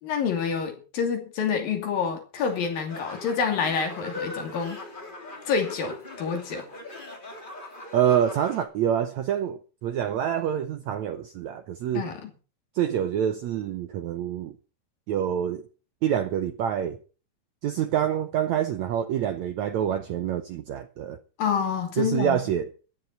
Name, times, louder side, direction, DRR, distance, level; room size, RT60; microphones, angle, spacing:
voice 1, 0.0-4.8 5.5-6.7 11.9-12.3 21.4-22.4, left 6 dB, 65° left, 4.3 m, -27 dB
sound 1, 2.3-8.6, left 2 dB, 15° left, 2.2 m, -40 dB
voice 2, 7.9-12.1 12.7-14.5 15.1-15.7 16.0-17.0 17.6-21.2 22.0-22.7, right 9 dB, 85° right, 1.6 m, -26 dB
15.5 x 11.0 x 5.5 m
omnidirectional pair, 4.4 m